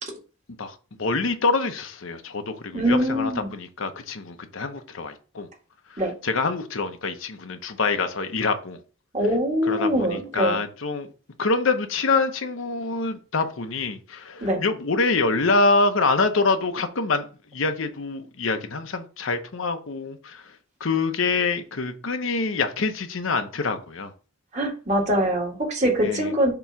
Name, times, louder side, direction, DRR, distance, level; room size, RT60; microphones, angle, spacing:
voice 1, 0.6-5.5 5.9-8.8 9.7-11.1 11.4-17.2 17.5-20.4 20.8-24.1 26.0-26.3, left 3 dB, 70° left, 0.8 m, -25 dB
voice 2, 2.7-3.5 6.0-6.1 9.1-10.6 14.4-14.6 24.5-26.5, equal, 35° right, 1.8 m, -23 dB
6.9 x 3.0 x 5.7 m
head